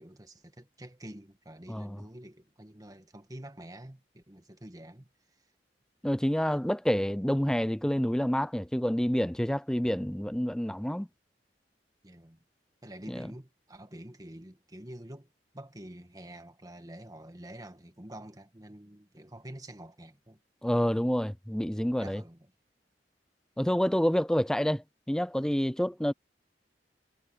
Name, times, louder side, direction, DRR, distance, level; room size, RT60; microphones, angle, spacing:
voice 1, 0.0-5.1 12.0-12.4 12.8-20.4 22.0-22.5, right 1 dB, 20° right, 1.6 m, -47 dB
voice 2, 1.7-2.0 6.0-11.1 13.1-13.3 20.6-22.2 23.6-26.1, equal, 5° left, 0.4 m, -28 dB
head